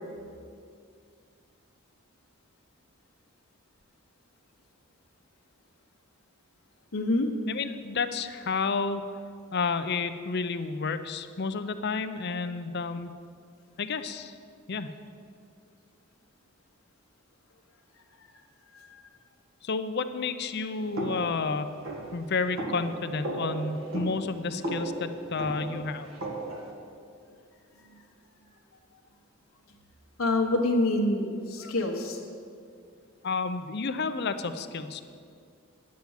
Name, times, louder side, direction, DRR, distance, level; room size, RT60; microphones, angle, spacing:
voice 1, 6.9-7.3 18.7-19.0 27.8-27.9 30.2-32.2, left 2 dB, 70° left, 1 dB, 1.1 m, -26 dB
voice 2, 7.5-9.1 9.5-13.1 13.8-14.4 14.7-14.9 19.6-21.8 22.1-26.1 33.2-35.0, left 4 dB, 50° left, 10 dB, 0.6 m, -31 dB
sound 1, 21.0-26.7, right 1 dB, 70° right, 2.0 m, -36 dB
10.5 x 7.6 x 7.2 m, 2.3 s
head